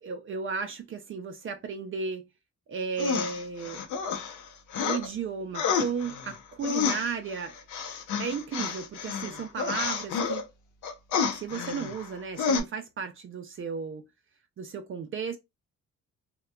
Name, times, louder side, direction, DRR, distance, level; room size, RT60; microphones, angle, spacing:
voice 1, 0.0-2.3 2.7-3.8 4.8-7.6 8.2-10.4 11.3-14.0 14.6-15.4, right 5 dB, 45° right, 0.5 m, -34 dB
sound 1, 3.0-5.1 5.5-10.4 10.8-12.1 12.4-12.6, left 6 dB, 80° left, 0.7 m, -30 dB
2.8 x 2.2 x 2.3 m
cardioid pair, 90°, 30 cm